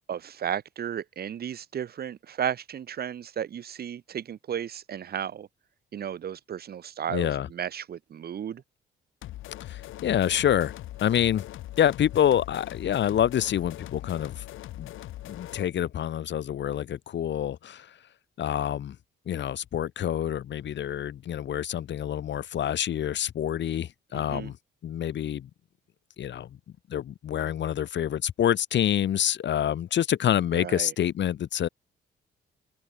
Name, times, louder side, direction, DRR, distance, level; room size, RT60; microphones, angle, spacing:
voice 1, 0.1-5.5 5.9-8.6 24.1-24.5 30.5-30.9, right 9 dB, 50° right, 1.0 m, -34 dB
voice 2, 7.1-7.5 9.6-10.7 11.0-11.4 11.8-14.4 14.8-14.9 15.2-17.9 18.4-19.0 19.3-24.6 24.8-25.5 26.2-26.5 26.9-31.7, left 10 dB, 65° left, 2.8 m, -27 dB
sound 1, 9.2-15.7, left 15 dB, 85° left, 3.9 m, -41 dB
open air
cardioid pair, 90°, 20 cm